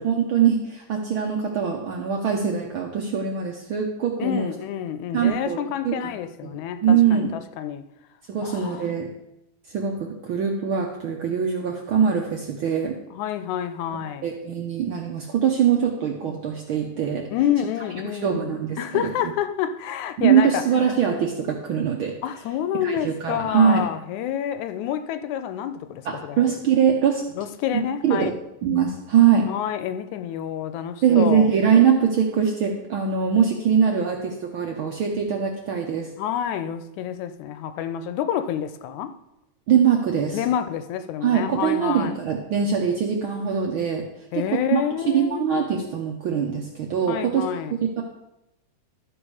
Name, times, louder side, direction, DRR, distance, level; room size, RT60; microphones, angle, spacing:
voice 1, 0.0-4.5 5.1-6.1 6.4-6.5 6.8-7.3 8.3-9.1 9.7-13.0 14.2-17.3 18.2-19.1 20.2-22.1 22.8-23.9 26.0-27.2 27.7-28.3 28.6-29.5 31.0-36.1 39.7-40.4 41.2-44.0 44.3-44.8 45.1-47.4 47.8-48.0, right 7 dB, 70° right, 1.3 m, -22 dB
voice 2, 4.2-7.8 8.4-8.9 13.1-14.3 17.3-20.6 22.2-26.5 27.4-28.3 29.5-31.5 36.2-39.1 40.3-42.2 44.3-45.6 47.1-47.8, left 10 dB, 85° left, 2.0 m, -28 dB
12.5 x 5.7 x 4.8 m
omnidirectional pair, 3.3 m